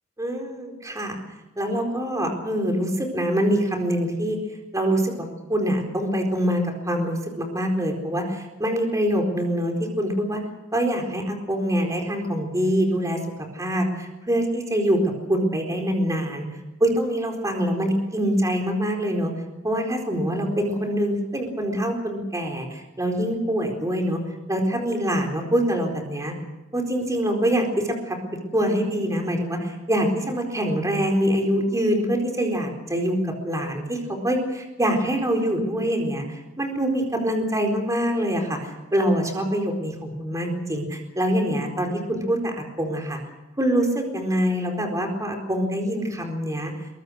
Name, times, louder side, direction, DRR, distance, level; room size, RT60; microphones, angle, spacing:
voice 1, 0.2-1.2 1.6-4.4 4.7-10.4 10.7-13.2 13.5-15.0 15.3-16.4 16.8-19.3 19.6-24.2 24.5-26.3 26.7-28.2 28.5-43.2 43.6-46.7, equal, 15° right, 3 dB, 4.3 m, -24 dB
23.0 x 23.0 x 6.5 m, 1.0 s
head